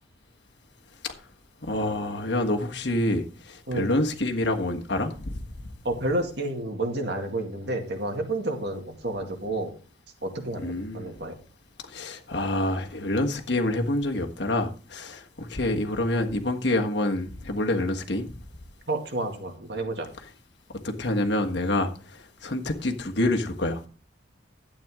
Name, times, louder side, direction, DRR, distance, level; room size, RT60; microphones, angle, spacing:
voice 1, 1.6-5.3 10.6-11.1 11.9-18.3 20.8-21.9 22.4-23.8, left 1 dB, 65° left, 1.5 m, -27 dB
voice 2, 5.8-9.7 10.2-11.4 18.9-20.1, right 2 dB, 60° right, 2.1 m, -30 dB
12.0 x 8.9 x 3.7 m
head